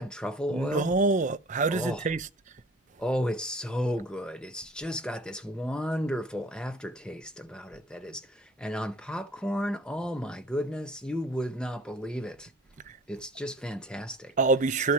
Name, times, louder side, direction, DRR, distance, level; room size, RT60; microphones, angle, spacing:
voice 1, 0.0-1.0 1.7-2.1 3.0-12.5 13.1-14.3, equal, 5° left, 0.6 m, -33 dB
voice 2, 0.5-2.2 14.4-14.9, right 3 dB, 35° right, 0.5 m, -25 dB
12.0 x 4.4 x 4.7 m
head